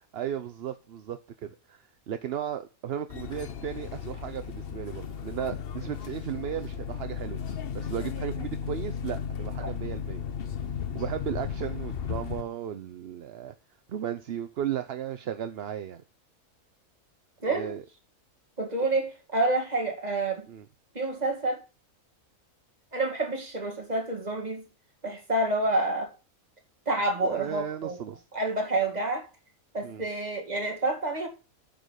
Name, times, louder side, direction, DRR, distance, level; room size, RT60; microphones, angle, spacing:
voice 1, 0.1-7.4 7.7-10.2 10.9-13.5 13.9-16.0 17.5-17.8 20.5-20.6 27.2-28.2 29.8-30.0, right 9 dB, 55° right, 0.8 m, -35 dB
sound 1, 3.1-12.4, left 7 dB, 50° left, 0.9 m, -35 dB
voice 2, 17.4-17.7 18.6-20.5 20.9-21.6 22.9-24.7 25.0-26.1 26.9-28.0 28.3-29.3 29.7-31.3, right 2 dB, 30° right, 2.2 m, -28 dB
9.2 x 5.3 x 6.3 m
omnidirectional pair, 1.5 m